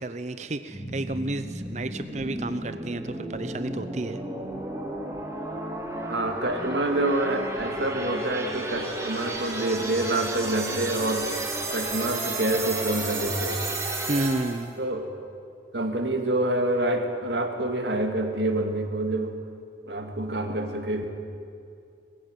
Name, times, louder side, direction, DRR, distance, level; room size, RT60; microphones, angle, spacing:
voice 1, 0.0-4.2 14.1-14.7, right 2 dB, 40° right, 11 dB, 0.7 m, -31 dB
sound 1, 0.7-14.7, right 2 dB, 15° right, 2.9 m, -33 dB
voice 2, 6.1-11.3 11.7-13.6 14.8-15.1 15.7-19.4 19.9-21.1, right 1 dB, 70° right, 4 dB, 2.2 m, -27 dB
20.5 x 14.5 x 9.4 m, 2.5 s
head